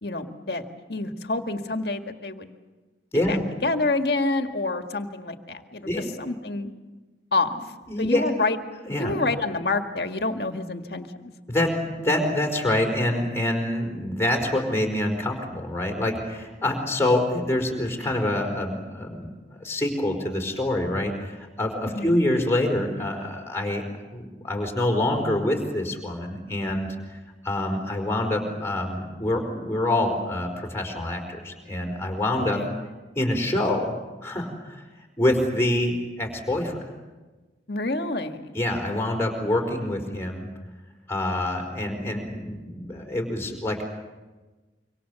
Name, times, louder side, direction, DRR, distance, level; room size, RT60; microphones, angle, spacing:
voice 1, 0.0-0.6 0.9-2.5 3.3-6.7 7.3-7.5 8.0-8.6 9.0-11.3 21.9-22.2 32.5-32.7 37.7-38.5, left 2 dB, 60° left, 6 dB, 1.8 m, -27 dB
voice 2, 7.9-8.2 8.9-9.1 11.5-19.3 19.6-23.8 24.1-27.2 27.4-32.6 33.1-33.9 34.2-34.9 35.2-36.8 38.5-40.5 41.1-43.8, left 1 dB, 15° left, 1 dB, 4.6 m, -26 dB
26.5 x 25.0 x 7.0 m, 1.2 s
head